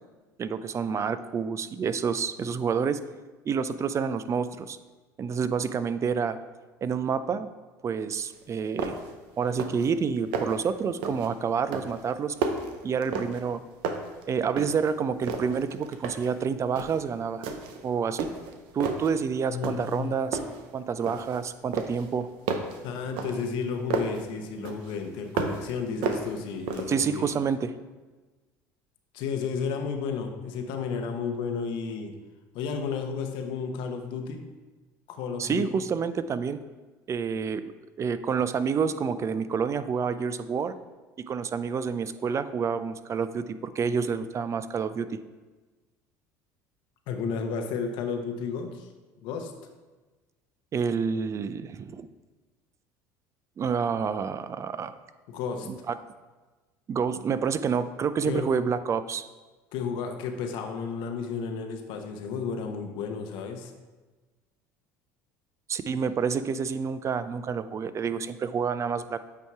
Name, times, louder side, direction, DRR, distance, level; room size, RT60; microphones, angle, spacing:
voice 1, 0.4-3.0 3.5-4.8 5.2-6.4 6.8-7.5 7.8-9.0 9.4-12.4 12.8-13.6 14.3-17.5 17.8-18.3 18.7-20.4 20.7-22.3 26.9-27.7 35.4-36.6 37.1-37.6 38.0-40.7 41.2-45.2 50.7-52.1 53.6-54.9 55.6-56.0 56.9-59.2 65.7-69.2, right 6 dB, 35° right, 13 dB, 0.4 m, -28 dB
sound 1, 8.3-8.4 8.8-9.2 9.5-9.9 10.2-10.7 11.0-11.3 11.7-13.6 13.8-14.9 15.2-16.4 16.8-17.0 17.4-17.8 18.2-19.1 19.6-20.0 20.3-21.4 21.7-24.2 24.6-25.7 26.0-27.1, right 4 dB, 70° right, 0.7 m, -32 dB
voice 2, 19.5-20.2 22.8-27.3 29.1-32.1 32.5-34.4 35.1-35.7 47.1-48.9 49.2-49.5 55.3-55.7 58.2-58.5 59.7-63.7, left 5 dB, 70° left, 5 dB, 0.8 m, -32 dB
8.3 x 2.9 x 4.6 m, 1.3 s
hypercardioid pair, 80°, 9 cm